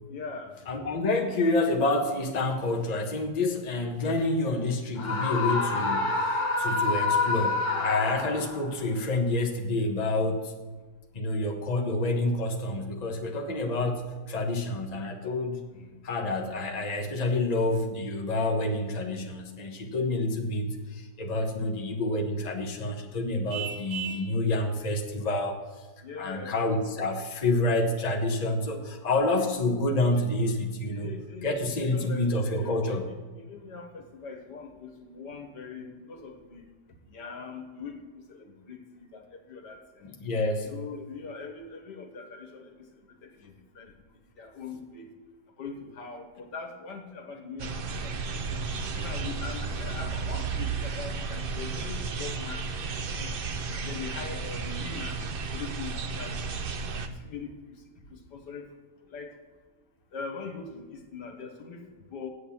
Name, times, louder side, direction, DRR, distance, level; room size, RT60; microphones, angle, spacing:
voice 1, 0.1-0.5 15.7-15.9 26.0-26.7 30.9-36.7 37.1-40.1 40.7-42.9 43.2-43.9 44.4-45.1 45.6-47.7 48.0-53.4 53.7-55.2 55.5-56.6 57.1-57.8 58.1-58.7 59.1-59.3 60.1-62.3, left 4 dB, 75° left, 4 dB, 2.0 m, -42 dB
voice 2, 0.7-10.5 11.1-15.7 16.0-25.8 26.2-31.1 31.4-33.1 40.2-40.7, left 2 dB, 25° left, 2 dB, 1.2 m, -28 dB
Screaming, 5.0-8.6, left 3 dB, 55° left, 1.9 m, -27 dB
Vehicle horn car horn honking, 23.5-24.3, right 8 dB, 85° right, 1.4 m, -36 dB
sound 1, 47.6-57.1, right 4 dB, 55° right, 0.6 m, -33 dB
8.2 x 8.0 x 7.1 m, 1.4 s
omnidirectional pair, 1.9 m